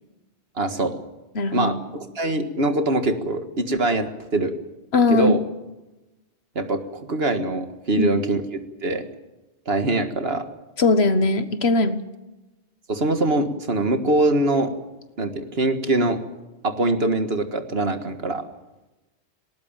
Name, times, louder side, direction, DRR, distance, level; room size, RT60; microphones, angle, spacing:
voice 1, 0.6-1.0 1.5-4.5 5.1-5.4 6.6-8.4 8.8-9.1 9.7-10.5 12.9-14.7 15.2-16.2 16.6-18.4, right 2 dB, 60° right, 8 dB, 1.9 m, -23 dB
voice 2, 1.3-1.7 4.9-5.3 8.0-8.1 10.8-12.0 17.8-17.9, left 3 dB, 65° left, 11 dB, 1.6 m, -19 dB
19.0 x 18.5 x 9.0 m, 1.1 s
omnidirectional pair, 1.2 m